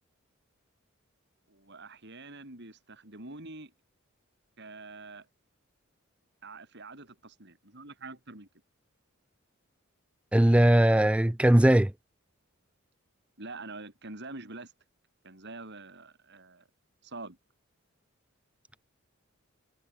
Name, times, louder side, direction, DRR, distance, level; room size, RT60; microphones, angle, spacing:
voice 1, 1.5-3.7 4.6-5.3 6.4-8.5 13.4-14.7 15.2-16.7 17.0-17.4, right 3 dB, 55° right, 5.6 m, -45 dB
voice 2, 10.3-11.9, right 1 dB, 5° right, 0.3 m, -20 dB
head